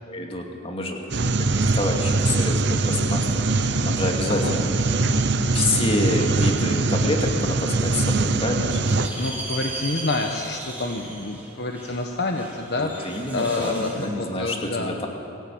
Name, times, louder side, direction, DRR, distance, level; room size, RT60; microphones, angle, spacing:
voice 1, 0.1-5.1 5.5-8.8 12.8-15.1, left 2 dB, 30° left, 2 dB, 2.4 m, -28 dB
sound 1, 1.1-9.1, right 3 dB, 55° right, 1.0 m, -22 dB
sound 2, 8.9-14.1, right 2 dB, 10° right, 3.9 m, -36 dB
voice 2, 9.2-15.0, left 2 dB, 55° left, 3 dB, 1.2 m, -28 dB
23.5 x 14.5 x 8.7 m, 2.8 s
head